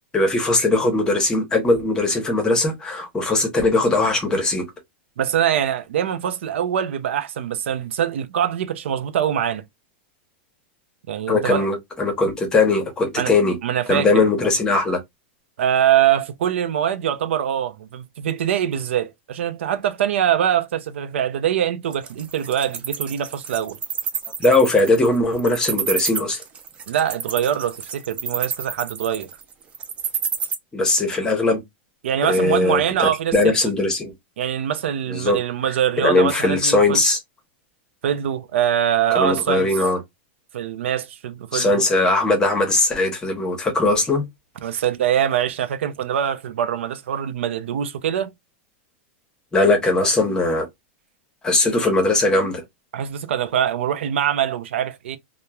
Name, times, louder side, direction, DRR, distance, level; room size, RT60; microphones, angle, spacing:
voice 1, 0.1-4.6 11.3-13.6 13.9-15.0 24.4-26.4 30.7-31.6 32.2-34.1 35.1-35.4 36.0-37.2 39.1-40.0 41.5-44.2 49.5-50.7 51.4-52.6, left 2 dB, 10° left, 0.7 m, -19 dB
voice 2, 5.2-9.6 11.1-11.7 13.2-13.3 13.6-14.3 15.6-23.8 26.9-29.3 32.0-33.5 34.4-37.0 38.0-39.7 40.5-41.8 44.6-48.3 52.9-55.2, right 10 dB, 90° right, 0.4 m, -23 dB
Wild animals, 21.9-30.5, right 7 dB, 20° right, 0.4 m, -28 dB
2.9 x 2.0 x 2.2 m
supercardioid pair, 160°, 6 cm